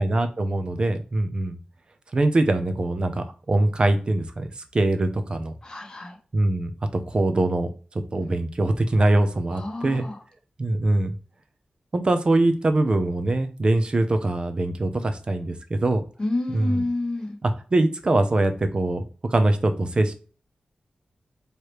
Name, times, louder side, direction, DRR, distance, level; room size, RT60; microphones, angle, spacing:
voice 1, 0.0-1.6 2.1-5.5 6.3-7.7 8.1-10.0 10.6-11.1 11.9-16.0 16.5-16.8 17.4-19.0 19.3-20.1, right 2 dB, 35° right, 8 dB, 0.7 m, -23 dB
voice 2, 5.6-6.2 8.2-8.4 9.5-10.2 16.2-17.4, left 2 dB, 25° left, 2 dB, 1.2 m, -29 dB
4.8 x 3.2 x 3.1 m, 0.37 s
wide cardioid pair, 125°, 3 cm